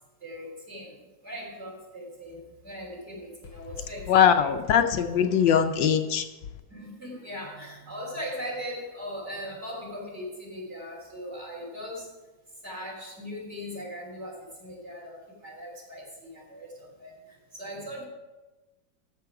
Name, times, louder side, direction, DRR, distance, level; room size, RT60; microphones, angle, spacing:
voice 1, 0.2-1.0 1.2-4.5 4.9-5.2 6.7-12.1 12.6-17.2 17.5-18.0, equal, 35° right, -3 dB, 3.5 m, -39 dB
voice 2, 4.1-6.3, left 8 dB, 75° left, 6 dB, 1.4 m, -21 dB
14.0 x 6.8 x 4.8 m, 1.1 s
omnidirectional pair, 2.1 m